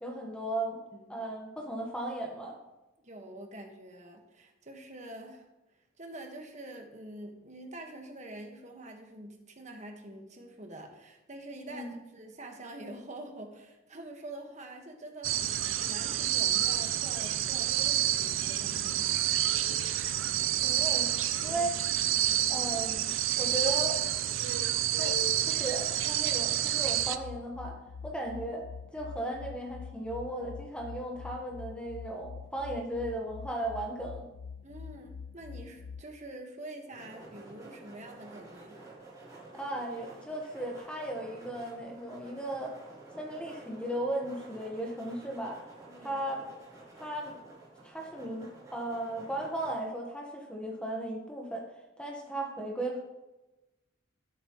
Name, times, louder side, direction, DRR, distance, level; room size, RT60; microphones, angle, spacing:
voice 1, 0.0-0.8 1.1-2.6 11.7-11.9 20.6-21.1 21.4-21.7 22.5-24.0 25.0-25.2 25.4-27.7 28.0-28.6 28.9-34.3 39.5-42.8 43.2-45.6 46.0-46.5 46.9-47.4 47.8-51.6 52.0-53.0, right 1 dB, 5° left, -1 dB, 1.3 m, -36 dB
voice 2, 3.0-5.5 6.0-19.1 21.5-21.7 34.6-38.8 45.9-46.2, right 1 dB, 35° right, 3 dB, 1.5 m, -46 dB
sound 1, 15.2-27.2, right 11 dB, 85° right, 0.6 m, -29 dB
sound 2, 27.0-36.0, left 5 dB, 65° left, 0.3 m, -45 dB
sound 3, 36.9-49.8, right 2 dB, 20° right, 3.6 m, -51 dB
16.5 x 8.5 x 3.1 m, 1.0 s
head